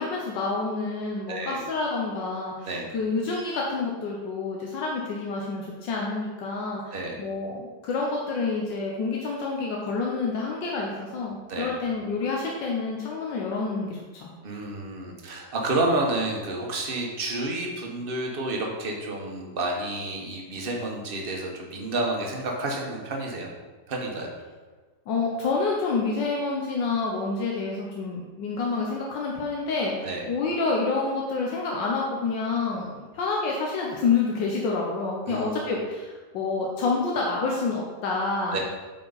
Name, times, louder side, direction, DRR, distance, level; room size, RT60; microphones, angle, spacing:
voice 1, 0.0-14.3 25.1-38.6, left 4 dB, 85° left, -2 dB, 1.6 m, -28 dB
voice 2, 1.3-1.6 2.7-2.9 6.9-7.2 11.5-11.7 14.4-23.5 23.9-24.3 30.0-30.2 35.3-35.5 38.5-38.6, right 2 dB, 35° right, 0 dB, 1.2 m, -30 dB
9.0 x 4.6 x 4.0 m, 1.3 s
omnidirectional pair, 1.9 m